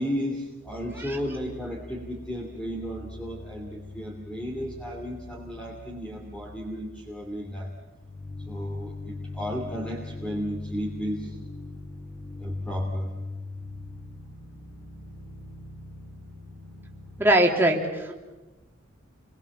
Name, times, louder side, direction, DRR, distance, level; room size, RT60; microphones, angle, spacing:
voice 1, 0.0-7.7 8.5-11.4 12.4-13.1, equal, 5° left, 0 dB, 2.8 m, -34 dB
sound 1, 0.6-17.3, left 2 dB, 60° left, 3.2 m, -41 dB
voice 2, 17.2-18.2, right 1 dB, 10° right, 0 dB, 3.2 m, -22 dB
30.0 x 22.0 x 7.4 m, 1.1 s
head